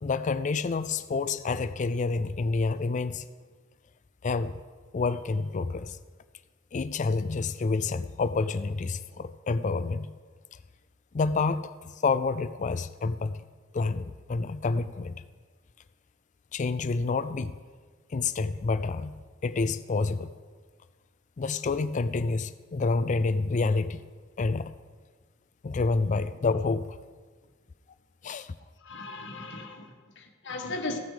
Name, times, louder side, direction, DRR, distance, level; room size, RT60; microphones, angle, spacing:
voice 1, 0.0-3.2 4.2-4.6 4.9-6.0 6.7-10.1 10.5-10.6 11.1-13.5 13.7-15.2 16.5-17.6 18.1-19.1 19.4-20.3 21.4-24.0 24.4-24.7 25.6-27.0 28.2-28.6, left 4 dB, 35° left, 0.4 m, -28 dB
voice 2, 28.8-31.0, left 2 dB, 60° left, 1.5 m, -37 dB
15.5 x 9.4 x 5.0 m
head